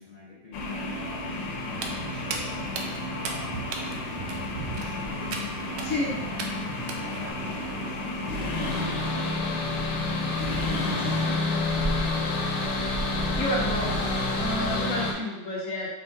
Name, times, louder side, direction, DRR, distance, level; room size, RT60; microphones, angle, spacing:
voice 1, 0.0-4.0 4.5-6.4 6.6-12.8 13.2-13.8, left 4 dB, 35° left, -8 dB, 0.6 m, -46 dB
sound 1, 0.5-15.1, left 2 dB, 75° left, 1.3 m, -30 dB
sound 2, 1.3-14.9, right 1 dB, 40° right, 1.2 m, -38 dB
Walk footsteps, 1.7-7.3, right 4 dB, 75° right, 1.1 m, -37 dB
voice 2, 5.8-6.2 13.3-13.9 14.3-15.9, left 1 dB, 55° left, -4 dB, 1.0 m, -30 dB
4.5 x 2.8 x 3.3 m, 1.0 s
omnidirectional pair, 2.0 m